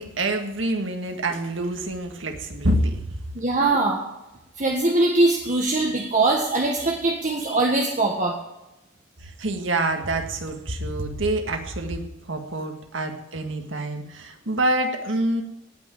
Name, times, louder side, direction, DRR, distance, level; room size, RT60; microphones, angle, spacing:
voice 1, 0.0-3.0 9.2-12.0 12.3-15.4, right 1 dB, 80° right, 5 dB, 1.9 m, -26 dB
voice 2, 3.3-4.0 4.6-8.4, right 2 dB, 40° right, -1 dB, 1.6 m, -22 dB
18.0 x 6.1 x 9.3 m, 0.96 s
head